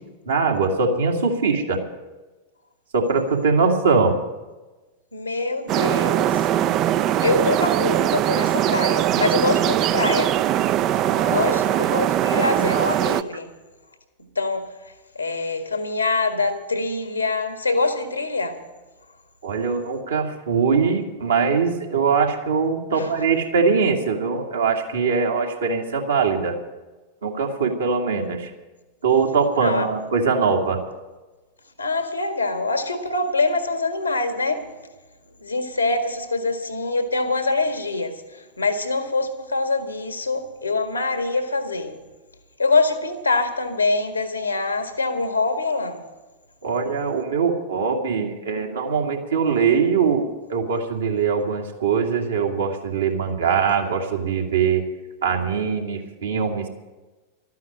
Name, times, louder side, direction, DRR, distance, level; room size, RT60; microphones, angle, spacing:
voice 1, 0.3-1.8 2.9-4.1 11.0-11.6 19.4-26.5 27.2-28.5 29.0-30.8 46.6-54.8 55.2-56.7, right 5 dB, 70° right, 2.2 m, -22 dB
voice 2, 5.1-6.5 7.2-10.4 11.2-13.5 14.4-18.6 22.9-23.3 29.6-29.9 31.8-34.8 35.4-42.0 42.6-46.0, left 3 dB, 85° left, 1.7 m, -24 dB
sound 1, 5.7-13.2, right 12 dB, 35° right, 0.4 m, -21 dB
13.0 x 9.4 x 8.8 m
figure-of-eight pair, 90°, 0 cm